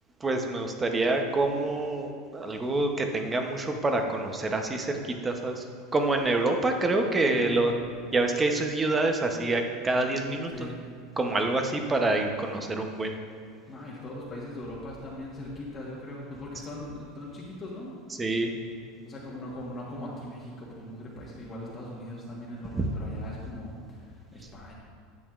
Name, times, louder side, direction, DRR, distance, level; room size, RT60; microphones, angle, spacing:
voice 1, 0.2-5.7 5.9-7.7 8.1-10.7 11.2-13.2 18.1-18.5 22.7-22.9, right 2 dB, 15° right, 4 dB, 0.7 m, -27 dB
voice 2, 13.7-17.9 19.0-24.7, left 1 dB, 25° left, -5 dB, 1.3 m, -40 dB
10.5 x 8.3 x 2.4 m, 2.3 s
supercardioid pair, 150°, 0 cm